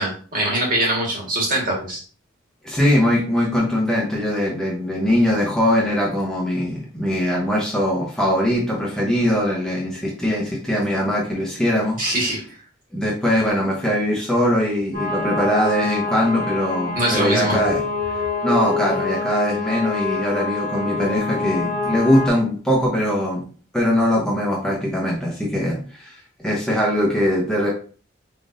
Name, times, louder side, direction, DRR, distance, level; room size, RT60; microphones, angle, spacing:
voice 1, 0.0-2.0 12.0-12.4 16.9-17.6, right 1 dB, 45° right, -3 dB, 1.7 m, -22 dB
voice 2, 2.6-12.0 12.9-17.8 18.4-23.4 23.7-27.7, equal, 5° left, -4 dB, 0.8 m, -21 dB
sound 1, 14.9-22.3, left 4 dB, 80° right, 2.0 m, -26 dB
4.9 x 3.7 x 2.6 m, 0.40 s
head